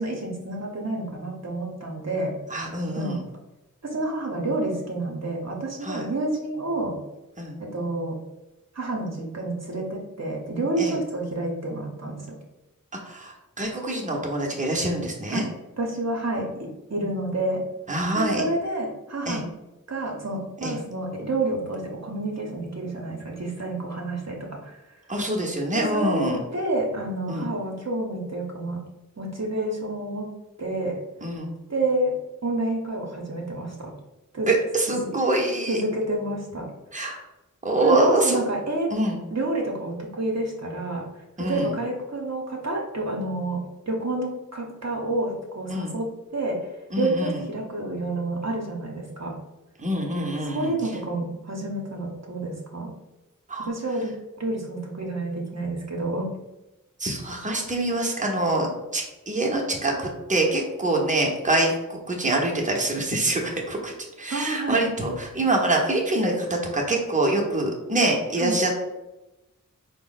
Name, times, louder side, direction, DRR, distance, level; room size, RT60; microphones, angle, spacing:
voice 1, 0.0-2.4 3.0-3.2 3.8-7.0 7.6-8.2 8.7-12.4 15.3-15.4 15.8-17.6 18.1-19.4 19.9-24.8 25.7-28.8 29.2-30.3 30.6-31.0 31.7-32.1 32.4-33.9 34.3-34.5 34.9-35.1 35.7-36.7 37.8-38.9 39.3-41.0 41.4-43.6 43.9-46.6 47.0-49.4 50.4-52.9 53.6-56.3 64.3-64.8 68.4-68.6, right 2 dB, 50° right, -1 dB, 0.8 m, -29 dB
voice 2, 2.5-3.2 5.8-6.1 7.4-7.5 10.8-11.0 13.0-15.4 17.9-18.4 19.3-19.4 20.6-20.8 25.1-26.4 27.3-27.5 31.2-31.5 34.5-35.8 36.9-37.2 37.6-38.5 38.9-39.2 41.4-41.7 45.7-45.9 46.9-47.4 49.8-50.7 53.5-53.7 57.0-68.9, right 1 dB, 20° right, -1 dB, 0.8 m, -25 dB
4.0 x 2.1 x 3.9 m, 1.0 s
wide cardioid pair, 40°, 33 cm